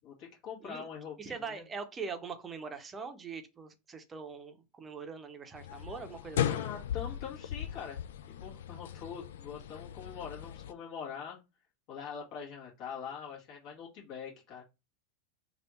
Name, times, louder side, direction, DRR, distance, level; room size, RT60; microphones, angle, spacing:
voice 1, 0.0-1.6 6.5-8.0 8.3-11.4 11.9-14.6, left 7 dB, 55° left, 1.5 m, -43 dB
voice 2, 1.2-6.6, right 5 dB, 25° right, 0.7 m, -42 dB
sound 1, 5.5-10.7, left 10 dB, 75° left, 0.3 m, -37 dB
3.3 x 2.5 x 4.3 m
hypercardioid pair, 100°, 0 cm